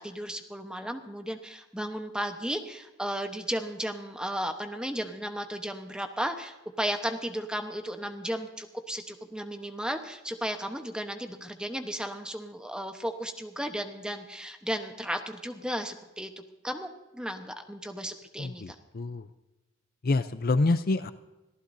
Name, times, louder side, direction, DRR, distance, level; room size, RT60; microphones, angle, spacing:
voice 1, 0.0-16.3 16.6-18.8, equal, 5° right, 6 dB, 1.0 m, -34 dB
voice 2, 18.4-19.3 20.0-21.1, left 3 dB, 50° left, 12 dB, 0.6 m, -27 dB
24.0 x 14.5 x 2.7 m, 1.0 s
head